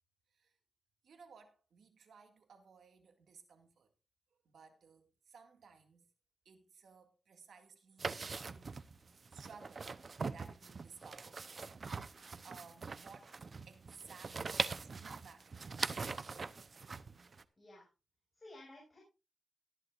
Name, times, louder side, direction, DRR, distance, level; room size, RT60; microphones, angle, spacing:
voice 1, 1.0-3.9 4.4-6.1 6.5-8.9 9.3-9.9 10.3-11.4 11.7-11.9 12.4-13.4 13.7-16.1 17.4-17.5, right 5 dB, 75° right, 2.1 m, -59 dB
sound 1, 8.0-17.4, right 4 dB, 40° right, 0.7 m, -42 dB
voice 2, 17.6-17.9 18.3-19.0, left 1 dB, 25° left, 5.8 m, -55 dB
19.0 x 11.5 x 2.5 m
wide cardioid pair, 130°, 0 cm